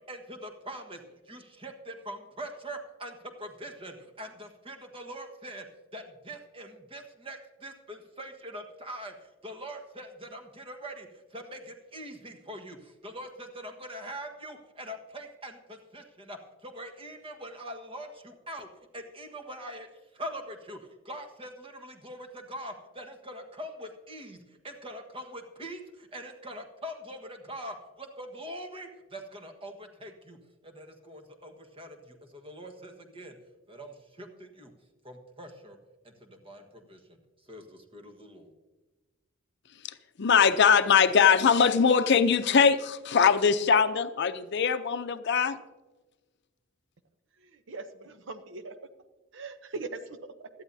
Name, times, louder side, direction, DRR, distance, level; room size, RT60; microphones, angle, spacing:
voice 1, 0.1-5.6 5.9-18.7 18.9-19.9 20.1-20.8 21.0-33.4 33.7-34.7 35.0-35.8 36.0-37.2 37.5-38.6, equal, 25° right, 1.4 m, -43 dB
voice 2, 40.2-45.6, left 6 dB, 60° left, 0.6 m, -22 dB
voice 3, 47.4-48.7 49.3-50.5, right 3 dB, 65° right, 0.8 m, -41 dB
17.0 x 12.5 x 2.7 m
head